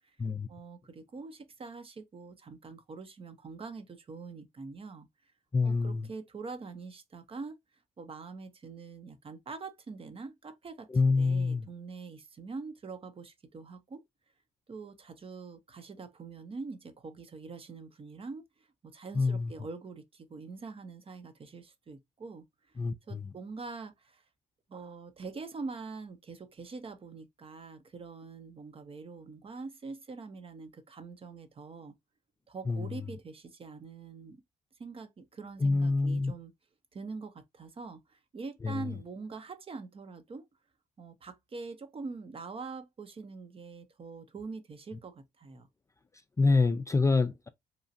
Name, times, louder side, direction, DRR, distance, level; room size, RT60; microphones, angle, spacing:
voice 1, 0.5-5.1 5.6-7.6 8.0-10.9 11.2-14.0 14.7-18.4 18.8-22.5 23.1-24.2 24.7-31.9 32.5-34.4 34.8-36.5 36.9-40.5 41.0-45.7, right 4 dB, 35° right, 0.7 m, -44 dB
voice 2, 5.5-6.1 10.9-11.7 19.1-19.5 22.8-23.3 32.7-32.9 35.6-36.3 38.6-38.9 46.4-47.5, left 3 dB, 20° left, 0.4 m, -27 dB
3.0 x 2.4 x 2.6 m
supercardioid pair, 65°, 15 cm